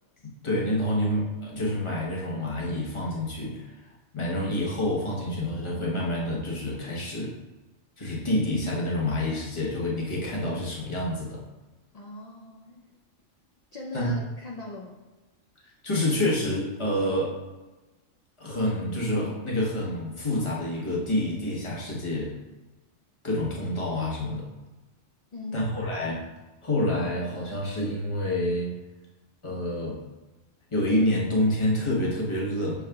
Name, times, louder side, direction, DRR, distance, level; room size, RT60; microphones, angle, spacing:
voice 1, 0.2-7.3 8.0-11.4 13.9-14.1 15.8-17.4 18.4-22.4 23.2-24.5 25.5-26.2 26.6-28.8 29.4-30.0 30.7-32.9, left 1 dB, 25° left, -4 dB, 1.0 m, -28 dB
voice 2, 11.9-13.0 13.7-15.0 25.3-25.7, left 2 dB, 60° left, -2 dB, 0.4 m, -40 dB
6.3 x 3.5 x 2.3 m, 1.1 s
omnidirectional pair, 1.3 m